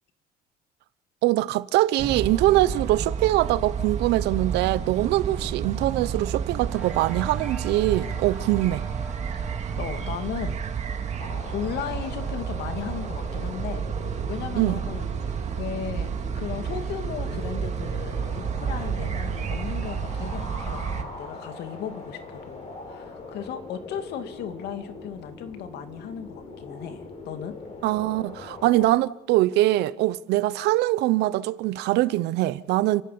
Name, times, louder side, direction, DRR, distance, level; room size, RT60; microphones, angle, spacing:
voice 1, 1.2-8.8 14.5-14.8 27.8-33.0, right 16 dB, 85° right, 0.8 m, -23 dB
sound 1, 2.0-21.0, right 7 dB, 45° right, 2.0 m, -31 dB
sound 2, 6.6-19.4, right 2 dB, 5° right, 3.3 m, -48 dB
voice 2, 9.3-10.6 11.5-27.5, left 8 dB, 75° left, 2.4 m, -36 dB
sound 3, 11.2-28.9, left 3 dB, 40° left, 7.1 m, -41 dB
29.5 x 11.5 x 8.6 m
cardioid pair, 110°, 17 cm